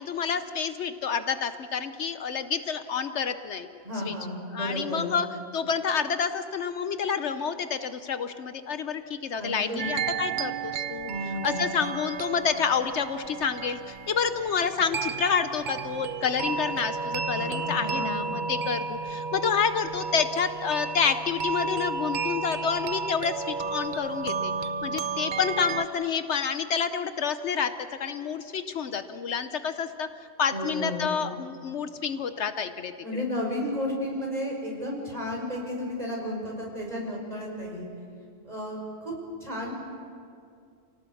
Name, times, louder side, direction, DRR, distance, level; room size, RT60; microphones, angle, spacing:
voice 1, 0.0-3.7 4.0-4.1 4.5-5.3 5.5-11.1 11.4-24.5 24.8-27.7 28.0-32.9, left 6 dB, 70° left, 10 dB, 1.0 m, -29 dB
voice 2, 3.8-5.2 9.4-9.9 11.1-11.7 17.3-18.5 30.5-31.4 33.0-37.9 38.4-39.1 39.4-39.7, left 1 dB, 30° right, -2 dB, 5.8 m, -33 dB
sound 1, 9.8-25.9, right 5 dB, 50° right, 0.7 m, -32 dB
28.5 x 18.0 x 7.1 m, 2.4 s
omnidirectional pair, 1.3 m